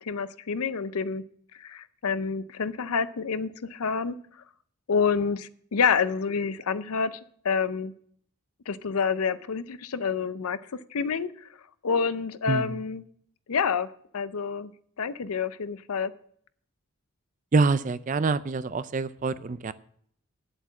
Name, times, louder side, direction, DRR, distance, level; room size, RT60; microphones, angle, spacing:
voice 1, 0.0-1.2 1.6-4.2 4.9-7.2 7.4-7.9 8.7-10.6 10.9-11.5 11.8-13.0 13.5-13.9 14.1-14.7 15.0-16.1, left 6 dB, 80° left, 15 dB, 0.6 m, -28 dB
voice 2, 12.5-12.8 17.5-19.7, right 4 dB, 35° right, 15 dB, 0.4 m, -26 dB
8.5 x 7.9 x 7.2 m, 0.63 s
head